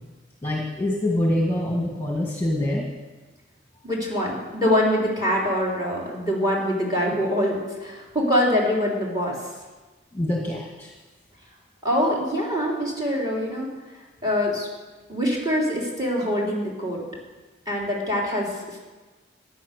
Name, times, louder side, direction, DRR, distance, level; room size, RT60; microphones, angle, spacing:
voice 1, 0.4-2.9 10.1-10.9, left 1 dB, 10° left, -2 dB, 1.9 m, -25 dB
voice 2, 3.8-9.3 11.8-13.7 14.2-14.7 15.1-17.0 17.7-18.8, equal, 20° right, -3 dB, 3.4 m, -24 dB
15.0 x 9.9 x 6.6 m, 1.3 s
head